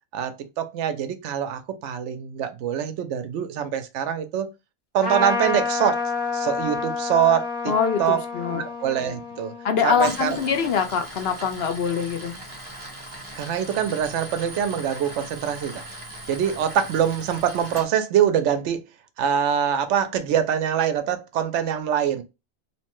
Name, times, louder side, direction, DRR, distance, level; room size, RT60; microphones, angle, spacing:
voice 1, 0.1-4.5 4.9-6.0 6.3-7.7 8.0-8.2 8.5-9.5 9.8-10.4 13.4-15.8 16.3-18.8 19.2-22.2, right 8 dB, 80° right, 0.9 m, -24 dB
Trumpet, 5.0-10.8, left 4 dB, 35° left, 0.4 m, -29 dB
voice 2, 7.7-8.6 9.6-12.4, left 6 dB, 65° left, 0.9 m, -24 dB
Tools, 9.9-17.9, right 1 dB, 30° right, 0.8 m, -39 dB
3.0 x 2.1 x 3.0 m
omnidirectional pair, 1.2 m